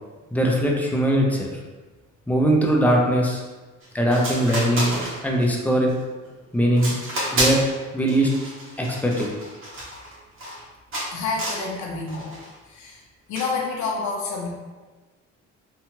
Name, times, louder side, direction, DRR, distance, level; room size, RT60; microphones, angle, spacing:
voice 1, 0.3-1.5 2.3-3.4 3.9-4.9 5.2-5.9 6.5-6.9 7.2-7.6 7.9-8.3 8.8-9.3, right 1 dB, 5° left, -1 dB, 0.5 m, -20 dB
sound 1, 3.8-3.9 4.1-5.5 5.9-6.3 6.7-7.8 8.1-10.6 10.9-11.7 12.1-12.5 13.3-13.6, right 1 dB, 45° right, 0.9 m, -29 dB
voice 2, 11.1-12.3 12.6-13.0 13.3-14.5, left 4 dB, 70° left, -1 dB, 0.6 m, -28 dB
2.7 x 2.3 x 2.9 m, 1.3 s
cardioid pair, 90°, 30 cm